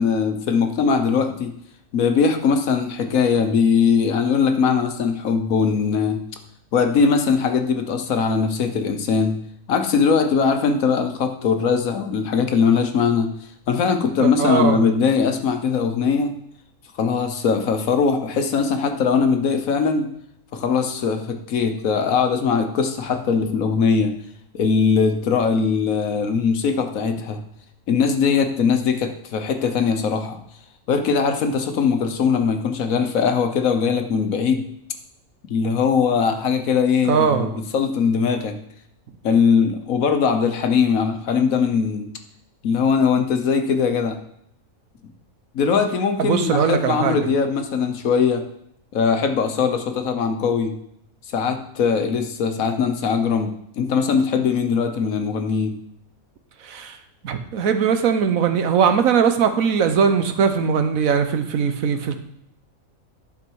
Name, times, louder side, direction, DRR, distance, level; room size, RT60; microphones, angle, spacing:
voice 1, 0.0-1.5 1.9-6.2 6.7-9.4 9.7-13.3 13.7-16.3 17.0-20.1 20.5-24.1 24.5-27.4 27.9-30.4 30.9-34.7 35.5-38.6 39.2-42.1 42.6-44.2 45.5-48.4 48.9-50.7 51.3-55.8, left 5 dB, 70° left, 6 dB, 1.3 m, -20 dB
voice 2, 14.2-14.8 37.0-37.6 46.2-47.2 56.6-57.0 57.2-62.2, right 6 dB, 75° right, 8 dB, 1.2 m, -20 dB
11.0 x 5.2 x 4.6 m, 0.74 s
omnidirectional pair, 1.5 m